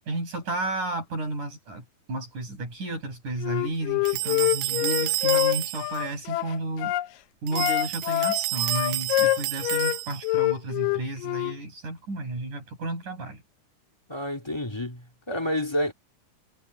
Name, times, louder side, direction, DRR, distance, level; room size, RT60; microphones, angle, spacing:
voice 1, 0.1-6.9 7.4-13.4, right 2 dB, 65° right, 9.7 m, -32 dB
Wind instrument woodwind instrument, 3.4-7.1 7.5-10.0 10.2-11.6, left 18 dB, 90° left, 2.3 m, -25 dB
sound 1, 4.1-6.0 7.5-10.4, right 20 dB, 80° right, 1.8 m, -30 dB
voice 2, 14.1-15.9, left 1 dB, 10° left, 1.4 m, -29 dB
omnidirectional pair, 3.8 m